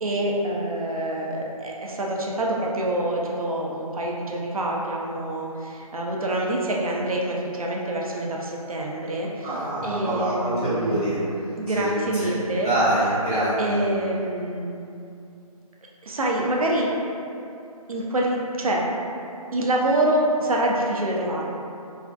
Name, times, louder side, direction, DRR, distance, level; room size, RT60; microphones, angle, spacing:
voice 1, 0.0-9.5 9.8-11.0 11.6-12.7 13.6-14.7 16.0-16.9 17.9-18.8 19.5-21.4, right 1 dB, 65° right, -2 dB, 0.4 m, -26 dB
voice 2, 9.4-11.4 11.7-12.3 12.6-13.8, right 1 dB, 10° left, -21 dB, 1.3 m, -25 dB
2.4 x 2.3 x 2.2 m, 2.6 s
figure-of-eight pair, 175°, 20 cm